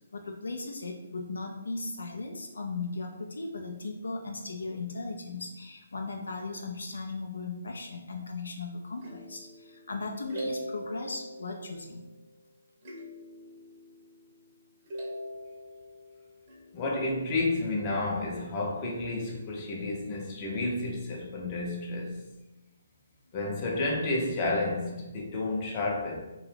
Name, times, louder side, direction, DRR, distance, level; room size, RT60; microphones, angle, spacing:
voice 1, 0.1-12.0, left 3 dB, 80° left, 2 dB, 0.4 m, -37 dB
sound 1, 9.0-12.3 12.8-14.5 14.9-17.2, equal, 40° right, 0.7 m, -42 dB
voice 2, 16.7-22.2 23.3-26.2, left 2 dB, 30° left, -1 dB, 0.6 m, -31 dB
2.4 x 2.2 x 3.3 m, 1.0 s
hypercardioid pair, 145°, 0 cm